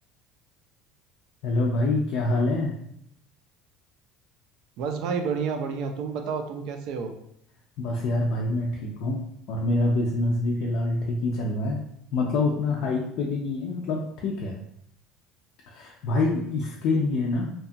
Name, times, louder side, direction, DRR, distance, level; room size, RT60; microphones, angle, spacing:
voice 1, 1.4-2.8 7.8-11.8 12.1-14.6 15.7-17.5, left 2 dB, 60° left, -2 dB, 0.4 m, -26 dB
voice 2, 4.8-7.1, right 5 dB, 65° right, 5 dB, 0.4 m, -30 dB
2.8 x 2.2 x 2.6 m, 0.72 s
cardioid pair, 145°, 0 cm